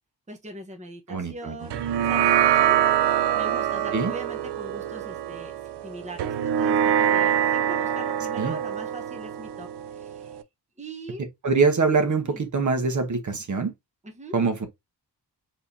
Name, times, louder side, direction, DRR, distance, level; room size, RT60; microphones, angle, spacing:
voice 1, 0.3-3.1 3.3-5.5 5.8-10.4 10.8-11.2 12.2-12.4 14.1-14.4, right 1 dB, 15° right, 1.1 m, -41 dB
voice 2, 1.1-1.6 3.9-4.1 8.4-8.6 11.4-13.7 14.3-14.7, right 4 dB, 45° right, 1.1 m, -24 dB
sound 1, 1.7-10.4, right 10 dB, 80° right, 0.6 m, -24 dB
4.6 x 3.7 x 2.7 m
wide cardioid pair, 135°, 40 cm